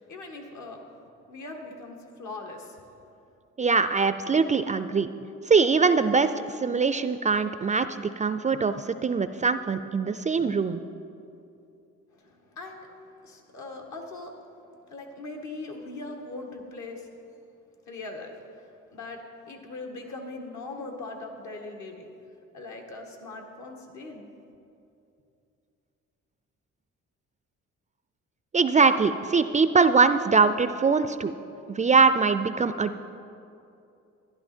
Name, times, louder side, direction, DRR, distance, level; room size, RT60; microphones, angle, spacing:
voice 1, 0.1-0.8 1.3-2.8 12.1-12.9 13.2-14.3 14.9-17.1 17.9-18.3 18.9-22.1 22.5-24.3, left 3 dB, 70° left, 2 dB, 1.8 m, -40 dB
voice 2, 3.6-5.1 5.4-10.8 28.5-31.3 31.7-33.0, right 5 dB, 25° right, 11 dB, 0.3 m, -22 dB
12.5 x 11.0 x 4.4 m, 2.7 s
cardioid pair, 90°, 30 cm